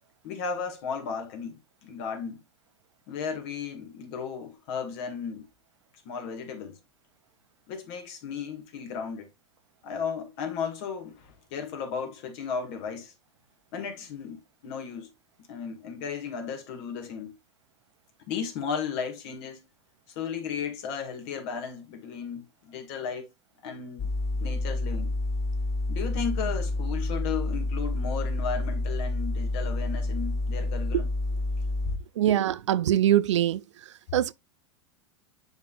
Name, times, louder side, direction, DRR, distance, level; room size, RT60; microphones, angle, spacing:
voice 1, 0.2-2.4 3.1-5.5 6.0-6.8 7.7-9.3 9.8-13.1 13.7-15.1 15.5-17.3 18.3-19.6 20.1-23.3 23.6-24.1 24.4-25.1 25.9-31.1, left 6 dB, 55° left, 2.2 m, -35 dB
sound 1, 24.0-32.0, left 2 dB, 20° left, 0.9 m, -29 dB
voice 2, 32.2-33.6 34.1-34.3, right 12 dB, 75° right, 0.4 m, -23 dB
10.5 x 3.8 x 2.5 m
hypercardioid pair, 95°, 15 cm